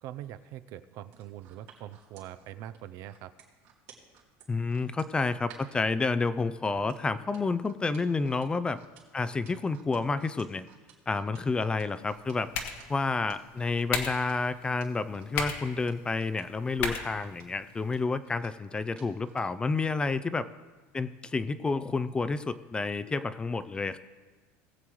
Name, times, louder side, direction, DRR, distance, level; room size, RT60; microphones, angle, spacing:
voice 1, 0.0-3.3, right 12 dB, 55° right, 12 dB, 0.5 m, -43 dB
sound 1, 1.1-5.8 6.7-19.5 19.9-20.1, right 9 dB, 75° right, 2.7 m, -56 dB
voice 2, 4.5-8.8 9.1-10.7 11.1-12.5 12.9-20.5 20.9-24.0, left 3 dB, 15° left, 14 dB, 0.4 m, -30 dB
sound 2, 12.0-18.0, left 6 dB, 75° left, 1.4 m, -38 dB
19.5 x 7.6 x 3.1 m, 1.3 s
cardioid pair, 135°, 6 cm